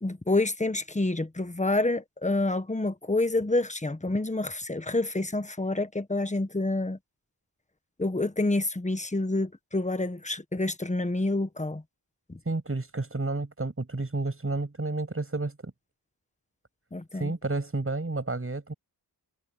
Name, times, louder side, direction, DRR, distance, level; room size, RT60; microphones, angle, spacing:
voice 1, 0.0-7.0 8.0-11.8 12.3-12.4 16.9-17.3, left 2 dB, 15° left, 1.4 m, -28 dB
voice 2, 12.5-15.7 17.1-18.7, right 3 dB, 30° right, 7.1 m, -31 dB
wide cardioid pair, 85°, 42 cm